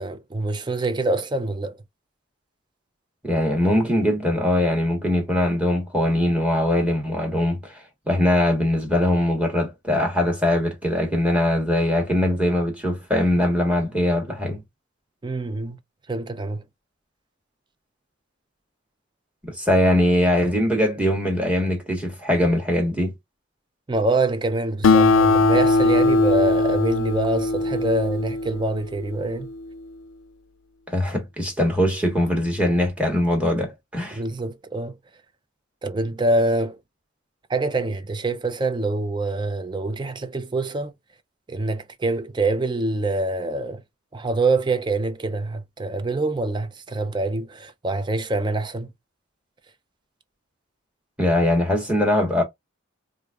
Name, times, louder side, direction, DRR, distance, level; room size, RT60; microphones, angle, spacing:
voice 1, 0.0-1.8 15.2-15.8 16.1-16.6 23.9-29.5 34.1-35.0 35.8-36.8 37.5-40.9 41.5-43.8 44.1-48.9, right 2 dB, 20° right, 0.4 m, -25 dB
voice 2, 3.2-14.6 19.4-23.1 30.9-34.2 51.2-52.4, left 1 dB, 5° right, 1.2 m, -21 dB
Acoustic guitar, 24.8-29.7, left 2 dB, 80° left, 0.4 m, -20 dB
4.8 x 2.6 x 2.4 m
head